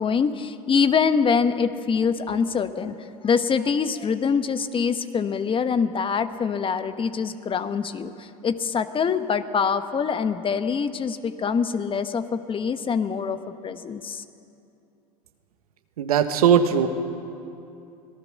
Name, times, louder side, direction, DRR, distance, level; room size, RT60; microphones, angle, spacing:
voice 1, 0.0-13.4 13.6-14.2, left 6 dB, 30° left, 10 dB, 1.2 m, -24 dB
voice 2, 16.0-16.9, right 8 dB, 80° right, 8 dB, 1.4 m, -19 dB
25.5 x 18.0 x 6.5 m, 2.7 s
hypercardioid pair, 85°, 19 cm